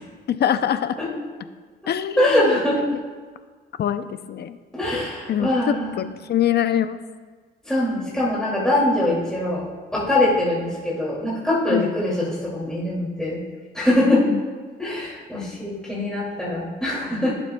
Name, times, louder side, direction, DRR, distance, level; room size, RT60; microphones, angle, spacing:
voice 1, 0.3-1.0 1.9-2.6 3.8-4.6 5.3-7.0 11.7-11.9 14.1-14.4, left 10 dB, 55° left, 11 dB, 0.6 m, -24 dB
voice 2, 2.2-2.8 4.7-6.0 7.7-13.4 13.7-14.3 14.8-17.3, left 1 dB, 5° left, -7 dB, 2.6 m, -23 dB
16.0 x 7.0 x 2.3 m, 1.5 s
cardioid pair, 90°, 20 cm